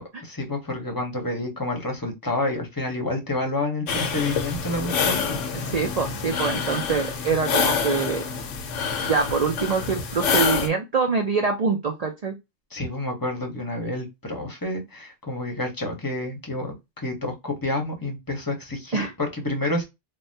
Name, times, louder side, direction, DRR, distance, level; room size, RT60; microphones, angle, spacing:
voice 1, 0.0-5.4 12.7-16.8 17.0-19.8, left 2 dB, 20° left, 2 dB, 0.8 m, -29 dB
sound 1, 3.9-10.7, left 6 dB, 80° left, 1.0 m, -26 dB
voice 2, 5.5-8.3 9.0-12.3 18.9-19.1, right 5 dB, 55° right, 3 dB, 0.4 m, -25 dB
3.4 x 2.2 x 2.6 m, 0.21 s
omnidirectional pair, 1.3 m